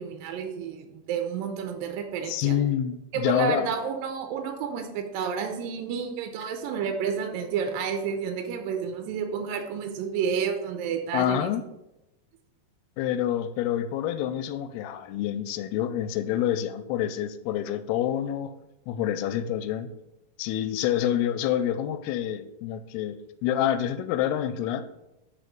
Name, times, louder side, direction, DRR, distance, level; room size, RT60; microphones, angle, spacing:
voice 1, 0.0-2.6 3.1-11.5, right 7 dB, 80° right, 5 dB, 2.2 m, -30 dB
voice 2, 2.3-3.7 11.1-11.7 13.0-18.5 18.9-19.9 20.4-24.9, left 11 dB, 90° left, 11 dB, 2.5 m, -27 dB
5.4 x 4.6 x 5.2 m, 0.92 s
omnidirectional pair, 4.4 m